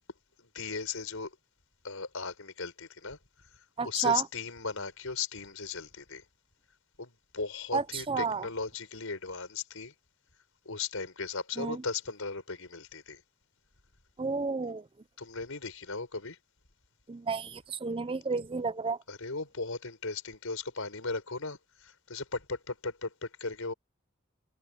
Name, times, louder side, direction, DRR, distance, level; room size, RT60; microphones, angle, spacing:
voice 1, 0.4-1.3 1.8-3.2 3.5-6.2 7.0-9.9 10.6-13.2 15.2-16.4 19.1-23.7, left 4 dB, 85° left, 4.8 m, -37 dB
voice 2, 3.8-4.2 7.7-8.4 11.6-11.8 14.2-14.8 17.1-19.0, right 4 dB, 25° right, 0.5 m, -31 dB
head